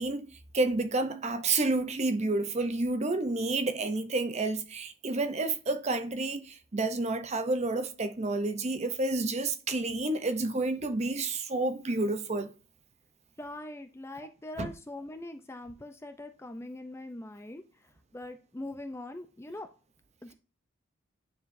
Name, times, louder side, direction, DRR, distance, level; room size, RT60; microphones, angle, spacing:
voice 1, 0.0-12.5 14.6-14.7, right 2 dB, 30° right, 0.6 m, -30 dB
voice 2, 13.4-17.6 18.1-19.7 20.2-20.3, left 1 dB, 10° left, 0.4 m, -42 dB
9.4 x 4.9 x 2.6 m
head